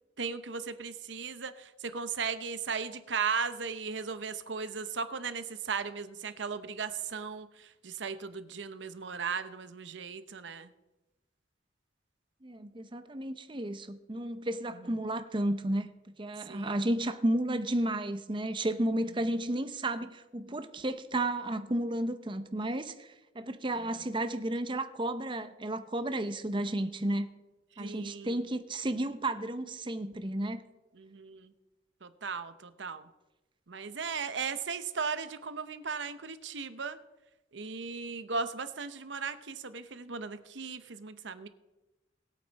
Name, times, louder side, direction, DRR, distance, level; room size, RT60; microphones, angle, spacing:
voice 1, 0.2-10.7 16.5-16.8 27.8-28.4 31.0-31.5 32.0-33.1 33.7-37.0 37.5-41.5, right 5 dB, 80° right, 11 dB, 0.8 m, -37 dB
voice 2, 12.4-15.9 16.2-27.3 27.8-30.6, right 1 dB, 25° right, 10 dB, 0.7 m, -32 dB
20.5 x 8.7 x 4.1 m, 1.0 s
head